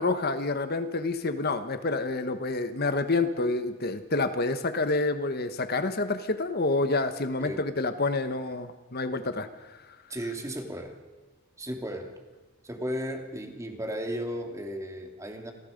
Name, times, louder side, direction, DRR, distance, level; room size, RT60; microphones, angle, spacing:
voice 1, 0.0-9.8, left 3 dB, 45° left, 9 dB, 1.3 m, -28 dB
voice 2, 10.1-11.0 11.6-12.1 12.6-15.5, equal, 15° right, 3 dB, 2.8 m, -35 dB
28.5 x 20.5 x 5.3 m, 1.2 s
head